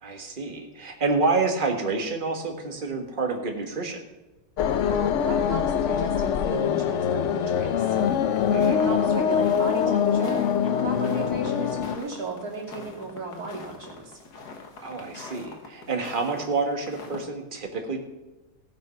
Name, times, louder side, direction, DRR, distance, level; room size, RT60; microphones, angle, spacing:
voice 1, 0.0-4.0 8.5-8.9 14.8-18.0, right 3 dB, 30° right, 3 dB, 1.7 m, -28 dB
sound 1, 4.6-12.0, left 8 dB, 90° left, 0.6 m, -24 dB
voice 2, 4.9-8.0 8.7-14.1, right 2 dB, 50° right, -1 dB, 3.2 m, -35 dB
sound 2, 7.8-16.5 16.8-17.3, left 4 dB, 60° left, 2.0 m, -43 dB
18.5 x 6.3 x 5.6 m, 1.1 s
omnidirectional pair, 2.0 m